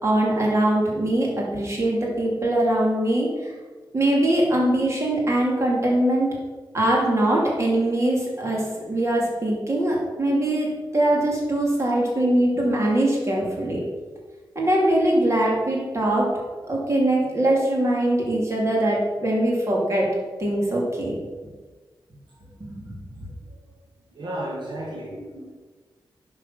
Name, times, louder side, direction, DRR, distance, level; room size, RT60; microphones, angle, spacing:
voice 1, 0.0-3.5 3.9-6.4 6.7-13.8 14.5-20.1 20.4-21.1 22.6-22.8, right 1 dB, 35° right, -3 dB, 2.7 m, -22 dB
voice 2, 24.1-25.5, right 1 dB, 60° right, -3 dB, 2.2 m, -34 dB
11.0 x 6.4 x 5.7 m, 1.4 s
wide cardioid pair, 160°, 8 cm